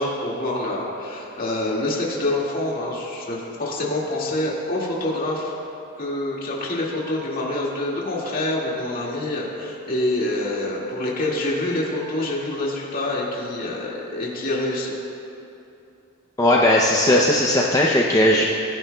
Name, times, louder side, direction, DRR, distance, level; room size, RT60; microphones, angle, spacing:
voice 1, 0.0-5.5 6.0-14.9, left 1 dB, 40° left, -4 dB, 2.1 m, -26 dB
voice 2, 16.4-18.4, left 1 dB, 15° left, -3 dB, 0.6 m, -17 dB
21.5 x 10.5 x 2.3 m, 2.8 s
head